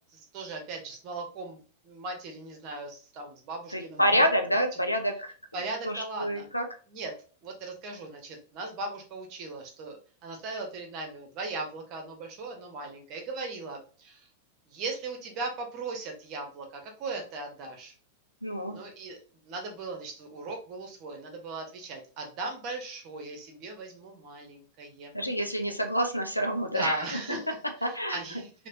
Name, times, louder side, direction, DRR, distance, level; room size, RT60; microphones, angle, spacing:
voice 1, 0.1-4.2 5.5-6.5 6.9-7.1 7.4-10.0 10.2-14.3 14.7-17.9 18.7-19.2 19.4-25.1 26.7-28.5, right 3 dB, 40° right, 3 dB, 1.0 m, -38 dB
voice 2, 3.7-5.3 5.8-6.6 18.4-18.8 25.1-27.2 27.8-28.2, equal, 90° left, 5 dB, 0.6 m, -27 dB
3.2 x 2.9 x 2.7 m, 0.39 s
figure-of-eight pair, 95°, 0 cm